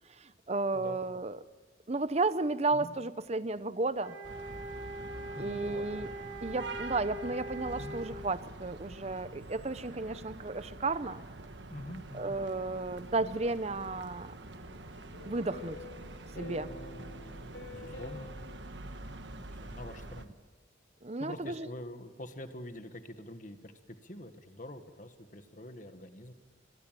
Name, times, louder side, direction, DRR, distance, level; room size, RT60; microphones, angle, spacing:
voice 1, 0.2-1.4 1.9-4.2 5.4-6.1 6.4-11.2 12.1-14.3 15.2-15.8 16.4-16.7 21.0-21.7, right 3 dB, 35° right, 15 dB, 0.7 m, -33 dB
voice 2, 0.7-1.2 2.7-2.9 5.3-6.0 7.8-8.0 11.7-12.4 17.4-18.3 19.3-20.3 21.2-26.3, left 1 dB, 40° left, 9 dB, 1.7 m, -46 dB
sound 1, 4.0-8.2, right 1 dB, 90° right, 3.3 m, -43 dB
sound 2, 4.2-20.2, right 2 dB, 65° right, 1.4 m, -46 dB
sound 3, 14.6-19.1, left 2 dB, 80° left, 4.2 m, -48 dB
23.0 x 22.0 x 7.7 m, 1.3 s
head